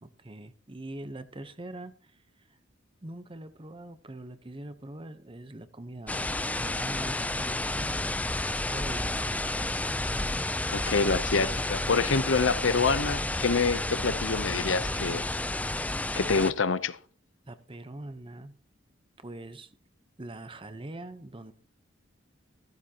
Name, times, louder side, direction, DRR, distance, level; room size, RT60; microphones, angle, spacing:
voice 1, 0.0-2.6 3.0-8.1 8.7-9.8 17.5-18.5 19.2-19.8 20.2-21.5, right 1 dB, 25° right, 0.9 m, -43 dB
sound 1, 6.1-16.5, left 2 dB, 10° left, 0.5 m, -31 dB
voice 2, 10.7-15.3 16.2-17.0, left 4 dB, 85° left, 0.8 m, -26 dB
14.5 x 14.5 x 2.9 m
head